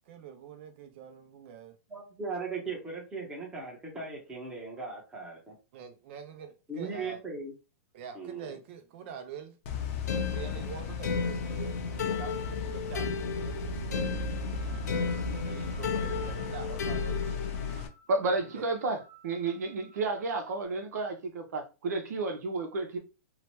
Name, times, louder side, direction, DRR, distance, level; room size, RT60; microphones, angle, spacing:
voice 1, 0.1-1.8 5.7-7.2 7.9-9.5 10.3-13.8 14.9-17.2 18.5-18.7, right 7 dB, 45° right, 0.4 m, -45 dB
voice 2, 1.9-5.5 6.7-7.5 8.1-8.6, right 4 dB, 10° right, 0.8 m, -38 dB
sound 1, 9.7-17.9, left 4 dB, 50° left, 0.6 m, -36 dB
sound 2, 10.1-17.8, left 5 dB, 90° left, 0.5 m, -34 dB
sound 3, 14.4-20.6, right 4 dB, 5° left, 0.5 m, -56 dB
voice 3, 18.1-23.0, right 3 dB, 75° right, 0.8 m, -31 dB
2.8 x 2.1 x 2.9 m
hypercardioid pair, 145°, 9 cm